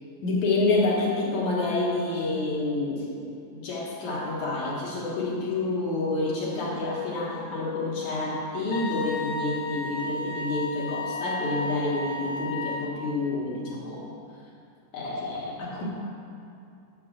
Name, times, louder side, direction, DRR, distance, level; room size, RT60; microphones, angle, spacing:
voice 1, 0.2-3.2 3.5-14.1 14.9-15.8, left 2 dB, 60° left, -5 dB, 2.2 m, -28 dB
Wind instrument woodwind instrument, 8.7-13.0, left 2 dB, 80° left, 2.2 m, -33 dB
6.9 x 6.2 x 7.2 m, 2.6 s
omnidirectional pair, 4.1 m